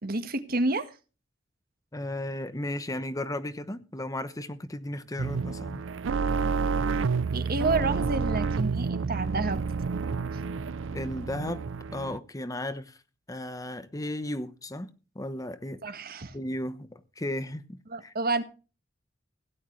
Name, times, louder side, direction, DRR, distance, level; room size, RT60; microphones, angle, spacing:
voice 1, 0.0-0.9 7.3-9.6 15.8-16.3 17.9-18.4, right 3 dB, 50° right, 1.5 m, -29 dB
voice 2, 1.9-5.8 10.9-11.7 11.9-13.0 13.3-14.9 15.1-15.8 16.3-18.1, left 1 dB, 20° left, 1.0 m, -35 dB
sound 1, 5.2-12.2, right 4 dB, 85° right, 0.5 m, -29 dB
17.0 x 11.0 x 3.2 m
head